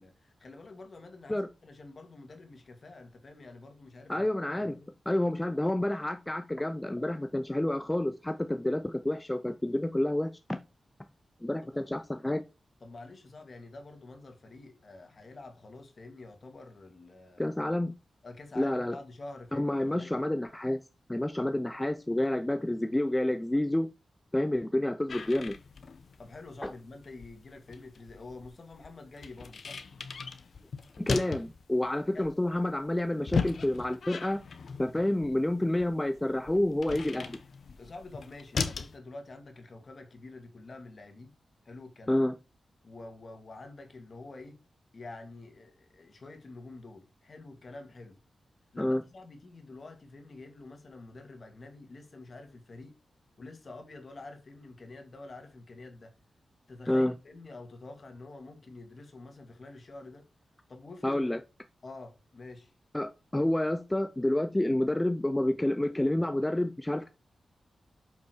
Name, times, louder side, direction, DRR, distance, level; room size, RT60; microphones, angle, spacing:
voice 1, 0.0-4.3 4.6-5.0 11.6-11.9 12.8-17.6 18.2-20.3 26.2-29.8 32.1-32.3 37.8-41.4 41.6-42.2 42.8-44.6 44.9-48.2 48.7-53.0 53.4-56.1 56.7-60.3 60.7-61.2 61.8-62.7, left 2 dB, 50° left, 2.2 m, -47 dB
voice 2, 4.1-4.8 5.1-10.6 11.4-12.4 17.4-17.9 18.6-19.0 19.5-20.8 21.1-23.9 24.3-25.5 26.6-26.7 31.0-34.4 34.8-37.4 42.1-42.3 48.8-49.0 56.9-57.1 61.0-61.4 62.9-67.1, left 1 dB, 15° left, 0.6 m, -29 dB
sound 1, 25.1-39.0, left 5 dB, 70° left, 1.0 m, -38 dB
6.8 x 5.8 x 4.6 m
cardioid pair, 75°, 0 cm